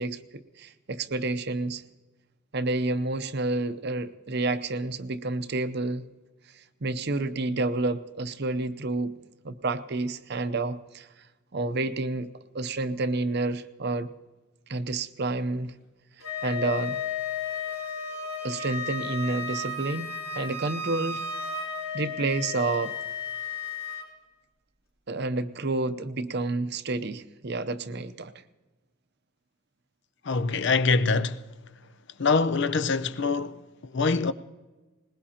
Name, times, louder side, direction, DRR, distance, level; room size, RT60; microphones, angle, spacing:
voice 1, 0.0-1.8 2.5-6.0 6.6-9.2 9.4-11.1 11.5-12.3 12.5-14.1 14.7-15.7 16.4-17.0 18.4-21.7 21.9-22.9 25.1-28.3, right 2 dB, 55° right, 0.7 m, -29 dB
Wind instrument woodwind instrument, 16.2-24.1, left 4 dB, 80° left, 3.4 m, -34 dB
voice 2, 30.2-31.5 32.2-34.3, left 4 dB, 60° left, 0.6 m, -24 dB
21.5 x 20.0 x 2.9 m
head